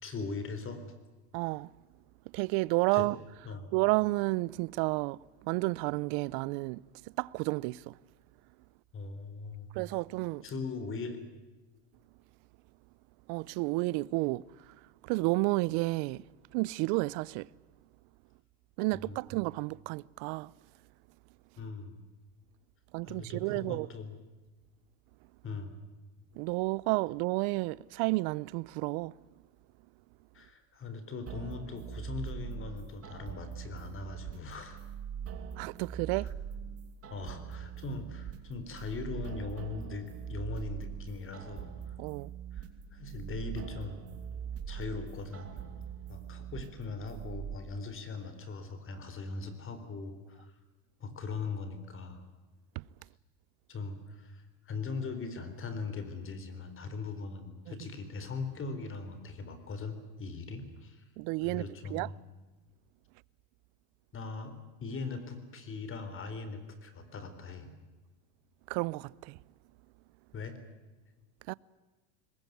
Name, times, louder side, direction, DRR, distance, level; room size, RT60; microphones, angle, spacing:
voice 1, 0.0-0.8 2.9-3.1 3.5-3.7 8.9-9.7 10.4-11.2 18.9-19.2 21.6-22.0 23.0-24.1 25.4-25.8 30.3-34.8 36.2-36.3 37.1-41.8 42.5-44.0 44.7-45.6 46.1-50.5 51.0-52.2 53.7-61.0 61.4-62.1 64.1-67.7 70.3-70.6, left 4 dB, 30° left, 4.0 m, -40 dB
voice 2, 1.3-1.7 2.3-3.2 3.7-6.8 7.2-8.0 9.7-10.4 13.3-14.8 15.0-16.2 16.5-17.5 18.8-20.5 22.9-23.9 26.3-29.2 35.6-36.3 42.0-42.3 52.8-52.9 57.7-57.8 61.2-62.1 68.7-69.4 71.5-71.6, right 23 dB, 60° right, 0.7 m, -31 dB
sound 1, 31.3-47.5, right 8 dB, 35° right, 3.2 m, -42 dB
22.5 x 20.5 x 9.4 m
supercardioid pair, 125°, 41 cm